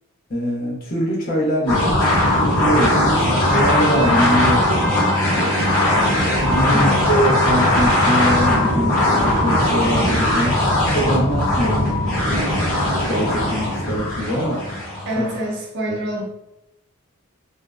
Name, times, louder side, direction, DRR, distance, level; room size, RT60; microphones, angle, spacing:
voice 1, 0.3-1.9 2.3-5.5 6.5-10.6 10.9-11.9 12.1-12.6 13.1-14.6 15.1-15.3 15.9-16.0, equal, 45° left, -5 dB, 0.7 m, -23 dB
sound 1, 1.7-15.4, left 1 dB, 20° left, 1.3 m, -19 dB
Trumpet, 3.3-8.7, equal, 5° left, 0.5 m, -31 dB
voice 2, 6.7-7.1 15.1-16.2, equal, 55° right, -2 dB, 0.6 m, -26 dB
2.5 x 2.1 x 2.3 m, 0.86 s
head